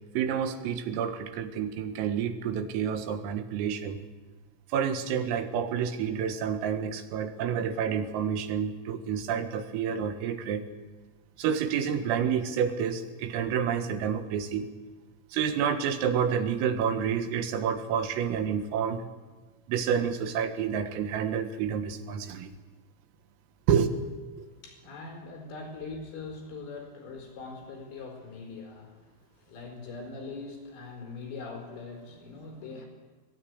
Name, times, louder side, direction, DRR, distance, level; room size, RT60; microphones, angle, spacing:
voice 1, 0.2-4.0 4.7-10.6 11.4-14.7 15.3-19.1 19.7-22.6 23.7-24.0 24.4-24.5, right 7 dB, 90° right, 9 dB, 4.2 m, -29 dB
voice 2, 24.4-32.9, left 4 dB, 60° left, 3 dB, 6.6 m, -42 dB
22.5 x 19.5 x 9.6 m, 1.3 s
omnidirectional pair, 5.9 m